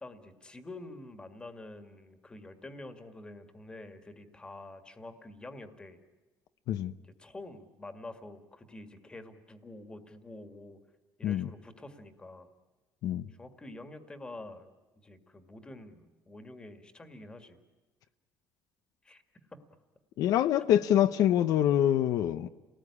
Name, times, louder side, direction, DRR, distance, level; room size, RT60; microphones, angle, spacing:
voice 1, 0.0-6.0 7.0-10.8 11.2-12.5 13.3-14.7 15.0-17.6 19.0-19.2, left 2 dB, 15° left, 1.9 m, -47 dB
voice 2, 20.2-22.5, left 11 dB, 70° left, 0.8 m, -25 dB
29.5 x 19.0 x 9.8 m
cardioid pair, 170°, 7 cm